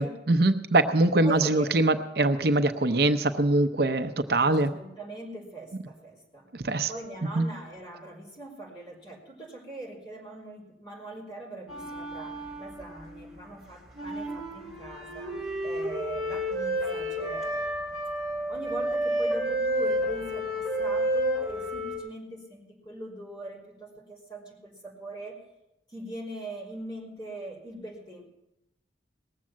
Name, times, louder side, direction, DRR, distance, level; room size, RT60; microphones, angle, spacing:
voice 1, 0.0-4.7 6.5-6.9 7.4-7.5, right 2 dB, 60° right, 9 dB, 0.6 m, -23 dB
voice 2, 1.2-1.8 4.4-6.5 6.9-15.4 15.6-17.7 18.5-25.4 25.9-28.2, right 2 dB, 25° left, -4 dB, 3.7 m, -41 dB
sound 1, 11.7-13.3 13.9-22.0, equal, 5° right, 3.5 m, -30 dB
19.0 x 7.5 x 7.4 m, 0.93 s
head